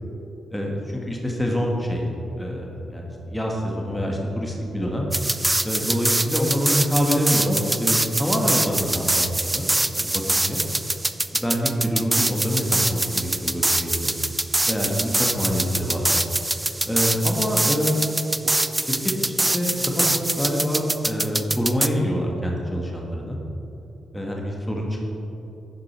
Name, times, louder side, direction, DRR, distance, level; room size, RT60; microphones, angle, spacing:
voice 1, 0.5-2.0 2.4-5.1 5.6-9.7 10.0-10.6 11.3-14.1 14.7-16.2 16.8-18.0 18.8-23.4 24.1-25.0, equal, 5° left, -1 dB, 1.4 m, -26 dB
sound 1, 5.1-21.9, right 2 dB, 15° right, 0.3 m, -24 dB
11.0 x 4.9 x 4.2 m, 2.9 s
cardioid pair, 60°, 0 cm